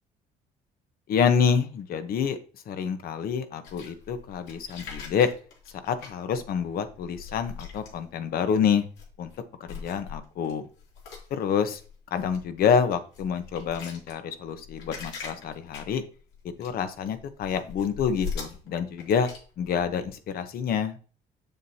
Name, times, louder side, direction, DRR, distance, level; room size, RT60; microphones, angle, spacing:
voice 1, 1.1-2.4 2.7-5.3 5.7-8.9 9.2-9.3 9.7-10.7 11.3-11.8 12.1-16.1 16.6-19.3 19.6-21.0, left 7 dB, 60° left, 10 dB, 1.0 m, -27 dB
sound 1, 3.6-8.4 8.8-9.4 9.7-20.4, left 6 dB, 85° left, 2.9 m, -42 dB
7.2 x 7.2 x 2.8 m, 0.38 s
cardioid pair, 110°, 17 cm